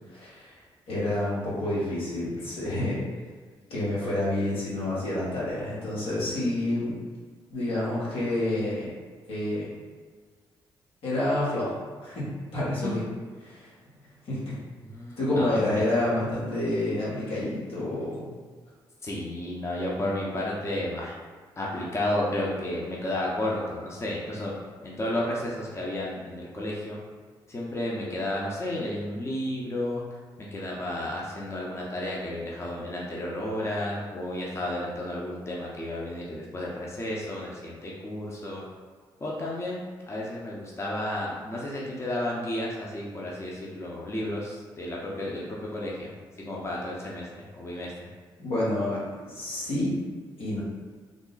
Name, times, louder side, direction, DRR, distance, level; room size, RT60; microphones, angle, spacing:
voice 1, 0.1-0.5 0.9-3.0 3.7-6.9 7.5-8.9 9.3-9.7 11.0-11.7 12.0-13.0 13.4-13.7 14.3-14.5 15.2-18.3 48.4-50.0 50.4-50.6, left 1 dB, 85° left, -8 dB, 1.4 m, -28 dB
voice 2, 14.8-15.9 19.0-21.1 21.6-24.5 24.8-27.0 27.5-30.0 30.5-38.6 39.2-39.8 40.1-46.1 46.5-47.9, left 1 dB, 30° left, -4 dB, 0.7 m, -32 dB
3.6 x 2.1 x 3.9 m, 1.5 s
cardioid pair, 70°, 9 cm